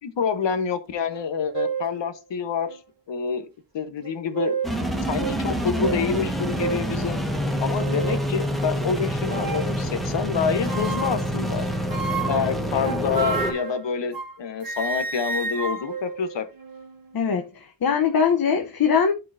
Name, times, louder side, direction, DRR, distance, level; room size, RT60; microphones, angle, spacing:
voice 1, 0.0-2.8 3.1-3.5 3.7-4.6 5.1-7.2 7.6-11.6 12.3-16.4, left 6 dB, 75° left, 1.1 m, -27 dB
sound 1, 1.1-1.2 1.5-1.9 2.7-2.8 4.0-4.8 5.2-5.4 5.8-6.0 6.6-6.9 7.5-8.3 9.3-9.7 10.7-11.3 11.9-14.4 14.6-17.0, right 5 dB, 50° right, 1.2 m, -31 dB
sound 2, 4.6-13.5, equal, ahead, 1.4 m, -27 dB
voice 2, 17.1-19.1, left 6 dB, 50° left, 0.9 m, -21 dB
12.0 x 4.6 x 2.6 m
wide cardioid pair, 115°, 44 cm